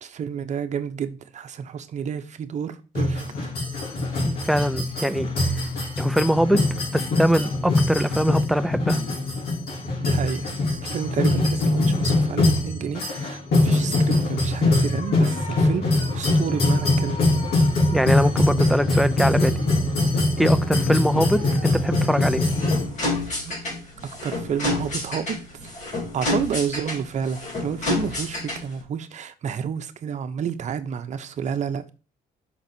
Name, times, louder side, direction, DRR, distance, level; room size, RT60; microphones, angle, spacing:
voice 1, 0.0-3.5 10.0-10.5 10.9-15.8 16.1-17.2 23.4-23.5 24.2-25.6 26.1-31.9, right 7 dB, 45° right, 0.9 m, -30 dB
sound 1, 2.9-22.8, left 2 dB, 70° left, 3.9 m, -22 dB
voice 2, 4.2-5.3 6.0-6.7 6.9-9.0 17.9-19.6 20.4-22.4, equal, ahead, 0.5 m, -22 dB
sound 2, 22.2-28.8, left 2 dB, 45° left, 2.9 m, -29 dB
6.1 x 4.1 x 6.0 m
cardioid pair, 110°, 17 cm